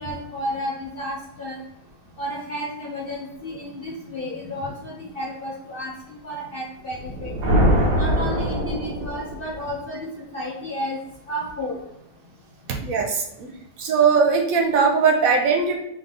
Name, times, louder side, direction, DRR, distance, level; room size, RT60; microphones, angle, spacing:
voice 1, 0.0-1.6 2.2-7.3 8.0-10.1 10.3-11.0 11.3-11.8, equal, 50° left, -3 dB, 0.7 m, -32 dB
sound 1, 7.0-9.6, equal, 90° right, 1.7 m, -22 dB
voice 2, 12.7-13.5 13.8-15.8, right 5 dB, 65° right, 2 dB, 1.0 m, -20 dB
3.8 x 3.3 x 3.6 m, 0.86 s
omnidirectional pair, 1.7 m